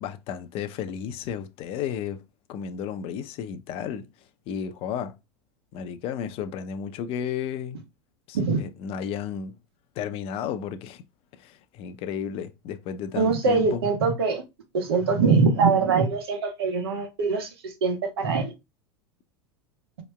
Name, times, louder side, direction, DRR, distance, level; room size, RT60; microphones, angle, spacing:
voice 1, 0.0-2.2 2.5-4.1 4.5-5.1 5.7-7.8 8.3-9.6 10.0-11.0 11.3-13.8, left 8 dB, 45° left, 0.6 m, -33 dB
voice 2, 13.1-14.4 14.7-18.5, right 4 dB, 80° right, 1.1 m, -23 dB
4.6 x 2.9 x 2.2 m
hypercardioid pair, 90°, 13 cm